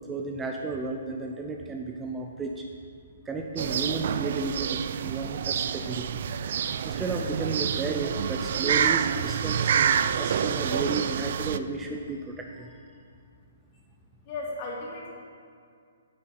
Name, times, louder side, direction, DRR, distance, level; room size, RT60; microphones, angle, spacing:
voice 1, 0.1-2.6 3.3-6.2 6.8-9.7 10.2-12.7, right 3 dB, 10° right, 2 dB, 0.7 m, -33 dB
sound 1, 3.6-11.6, right 8 dB, 50° right, 0.4 m, -27 dB
voice 2, 14.2-15.1, left 2 dB, 35° left, -3 dB, 2.8 m, -35 dB
9.8 x 8.5 x 5.7 m, 2.3 s
figure-of-eight pair, 125°, 0 cm